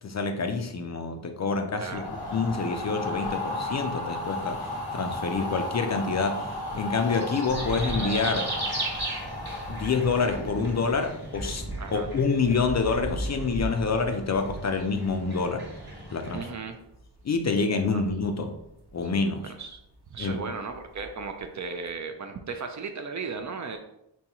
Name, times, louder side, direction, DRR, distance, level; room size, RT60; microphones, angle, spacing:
voice 1, 0.0-8.6 9.7-11.6 11.9-15.7 16.1-16.5 17.2-18.5 18.9-19.5 20.2-20.4, left 4 dB, 40° left, 5 dB, 0.4 m, -27 dB
sound 1, 1.8-10.9, left 2 dB, 85° left, 0.9 m, -35 dB
sound 2, 1.8-16.4, right 1 dB, 25° right, 1.2 m, -38 dB
sound 3, 7.5-21.9, right 1 dB, 60° right, 0.8 m, -40 dB
voice 2, 16.3-16.8 17.9-18.0 19.4-19.8 20.1-23.8, right 4 dB, 45° right, 6 dB, 0.4 m, -36 dB
3.9 x 2.3 x 2.9 m, 0.81 s
cardioid pair, 70°, 44 cm